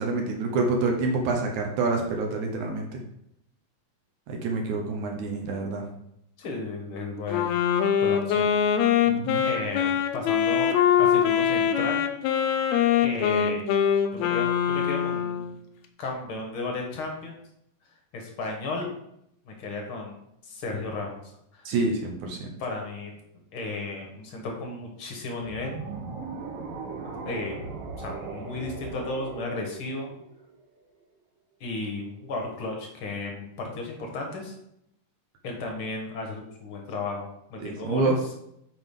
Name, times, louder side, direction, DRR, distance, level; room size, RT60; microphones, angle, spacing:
voice 1, 0.0-3.0 4.3-5.9 9.1-9.4 21.7-22.5 37.6-38.2, right 3 dB, 70° right, 2 dB, 2.1 m, -27 dB
voice 2, 6.4-7.6 8.0-8.5 9.4-12.0 13.0-13.6 14.1-15.5 16.0-17.4 18.1-18.9 19.4-20.1 20.4-21.7 22.6-23.2 23.5-25.8 27.2-27.5 28.0-30.1 31.6-34.5 35.4-38.2, left 3 dB, 60° left, 1 dB, 1.5 m, -34 dB
Wind instrument woodwind instrument, 7.3-15.5, left 8 dB, 85° left, 1.6 m, -23 dB
sound 1, 25.4-30.7, right 4 dB, 90° right, 2.8 m, -38 dB
8.7 x 5.5 x 3.7 m, 0.77 s
omnidirectional pair, 4.0 m